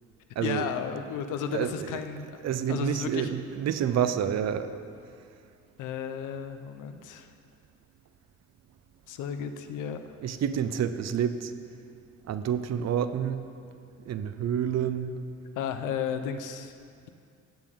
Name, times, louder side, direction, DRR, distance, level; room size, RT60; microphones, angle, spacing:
voice 1, 0.4-2.3 2.7-3.3 5.8-7.3 9.1-10.0 15.6-16.7, left 7 dB, 85° left, 8 dB, 0.8 m, -33 dB
voice 2, 1.5-1.9 2.4-4.8 10.2-11.5 12.3-13.4 14.0-15.1, right 9 dB, 60° right, 11 dB, 0.7 m, -28 dB
16.0 x 7.5 x 3.7 m, 2.4 s
cardioid pair, 90°, 30 cm